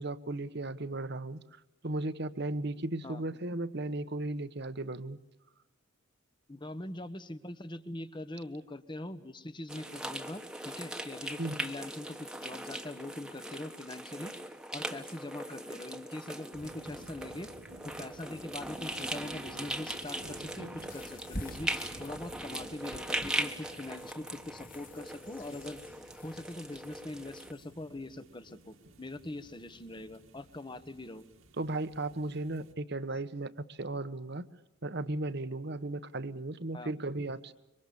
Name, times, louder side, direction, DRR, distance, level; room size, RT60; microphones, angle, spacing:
voice 1, 0.0-1.4 1.8-5.2 11.4-11.6 31.6-34.5 34.8-37.5, right 2 dB, 50° right, 12 dB, 1.2 m, -36 dB
voice 2, 6.5-14.3 14.7-17.5 17.8-25.8 26.2-31.2 36.7-36.9, left 1 dB, 20° left, 12 dB, 1.3 m, -42 dB
sound 1, 9.7-27.5, right 1 dB, 5° right, 1.4 m, -40 dB
sound 2, 16.5-32.7, right 1 dB, 80° right, 2.4 m, -54 dB
sound 3, 20.9-27.9, left 1 dB, 40° left, 2.3 m, -49 dB
26.5 x 24.5 x 7.2 m, 0.93 s
head